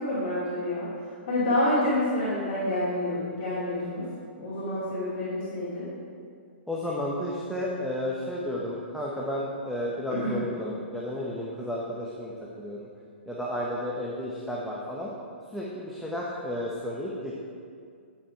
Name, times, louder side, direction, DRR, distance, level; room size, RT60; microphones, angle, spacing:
voice 1, 0.0-4.1 4.4-5.9 10.1-10.4, left 1 dB, 40° left, -10 dB, 2.7 m, -28 dB
voice 2, 6.7-12.9 13.3-15.1 15.5-17.4, left 1 dB, ahead, -5 dB, 1.0 m, -32 dB
10.0 x 7.1 x 4.6 m, 2.2 s
figure-of-eight pair, 115°, 6 cm